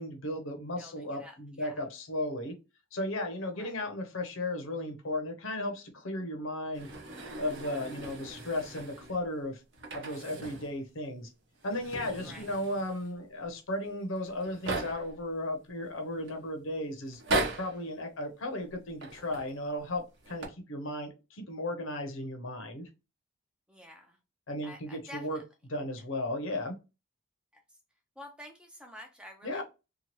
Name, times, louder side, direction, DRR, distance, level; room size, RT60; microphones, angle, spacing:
voice 1, 0.0-2.6 2.9-6.9 7.4-9.6 9.9-11.3 11.6-17.2 17.6-22.9 24.5-25.4 25.7-26.8 29.4-29.6, left 1 dB, 70° left, 5 dB, 0.7 m, -35 dB
voice 2, 0.8-1.9 3.5-3.8 12.2-12.4 23.7-24.2 24.6-25.4 27.5-27.6 28.2-29.6, left 1 dB, 5° right, 4 dB, 0.4 m, -49 dB
sound 1, 6.7-9.2 9.7-10.8 11.0-11.1 11.6-13.1 13.9-14.0 14.2-15.2 15.8-16.3 17.1-17.8 18.9-19.5 20.2-20.5, right 2 dB, 60° right, 0.8 m, -37 dB
2.9 x 2.3 x 2.9 m, 0.28 s
head